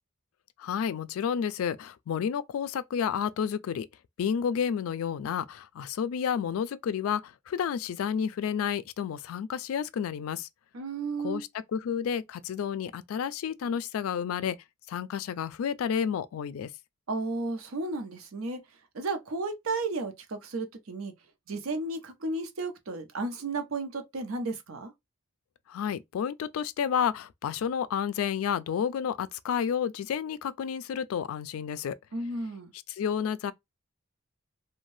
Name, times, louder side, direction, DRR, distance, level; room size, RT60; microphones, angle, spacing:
voice 1, 0.6-3.9 4.2-10.5 11.2-14.6 14.9-16.7 25.7-32.0 32.9-33.5, left 7 dB, 85° left, 0.3 m, -30 dB
voice 2, 10.7-11.4 17.1-18.6 18.9-21.1 21.5-24.9 32.1-32.7, right 3 dB, 85° right, 0.6 m, -33 dB
2.6 x 2.2 x 3.1 m
head